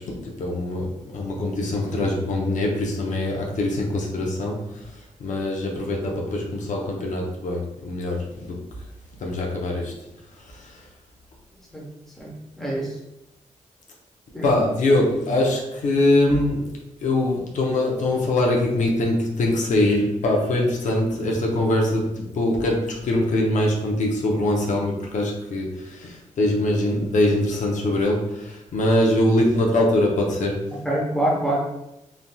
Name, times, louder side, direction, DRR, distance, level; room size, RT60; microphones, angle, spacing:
voice 1, 0.0-4.9 5.2-8.6 9.2-9.9 10.4-10.8 14.4-16.7 17.0-30.8, left 1 dB, 70° left, -1 dB, 0.6 m, -23 dB
voice 2, 12.6-12.9 14.3-14.5 30.8-31.6, right 1 dB, 5° left, -4 dB, 0.8 m, -25 dB
3.1 x 2.6 x 2.2 m, 0.88 s
wide cardioid pair, 110°, 13 cm